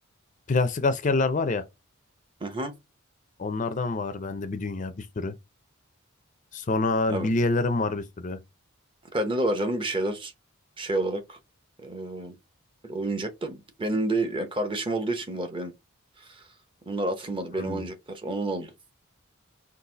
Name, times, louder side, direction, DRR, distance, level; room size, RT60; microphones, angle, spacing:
voice 1, 0.5-1.6 3.4-5.3 6.5-8.4 17.6-17.9, left 3 dB, 35° left, 0.5 m, -26 dB
voice 2, 2.4-2.7 7.1-7.3 9.1-10.3 10.8-11.4 11.8-12.4 12.8-15.7 16.2-16.4 16.9-18.7, right 2 dB, 25° right, 0.8 m, -29 dB
4.0 x 2.5 x 3.9 m
head